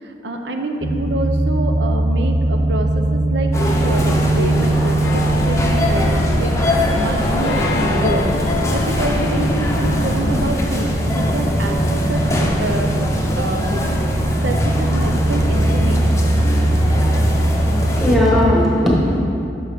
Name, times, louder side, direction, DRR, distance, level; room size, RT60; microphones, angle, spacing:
voice 1, 0.0-6.6 6.9-8.3 8.7-10.9 11.1-16.4, right 1 dB, 75° right, 4 dB, 0.7 m, -27 dB
sound 1, 0.8-18.6, right 1 dB, 20° right, 0.7 m, -21 dB
sound 2, 3.5-18.2, left 1 dB, 15° left, 0.6 m, -22 dB
sound 3, 5.0-10.5, left 3 dB, 75° left, 0.4 m, -27 dB
voice 2, 17.7-19.2, left 1 dB, ahead, -5 dB, 1.3 m, -17 dB
11.0 x 5.4 x 3.6 m, 2.7 s
head